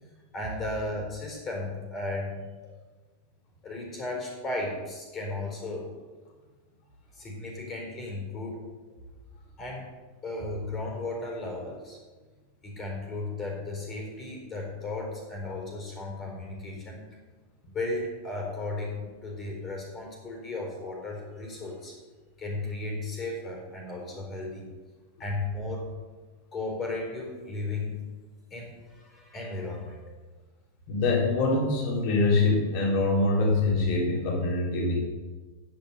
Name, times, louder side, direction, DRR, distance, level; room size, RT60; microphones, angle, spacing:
voice 1, 0.3-2.4 3.6-5.9 7.1-8.6 9.6-9.9 10.2-12.0 12.6-17.0 17.7-21.9 22.4-24.6 25.2-25.9 26.5-28.0 28.5-30.0, left 2 dB, 25° left, 0 dB, 4.1 m, -35 dB
voice 2, 30.9-35.0, left 2 dB, 45° left, -2 dB, 3.6 m, -24 dB
10.5 x 8.6 x 5.5 m, 1.3 s
figure-of-eight pair, 90°, 0 cm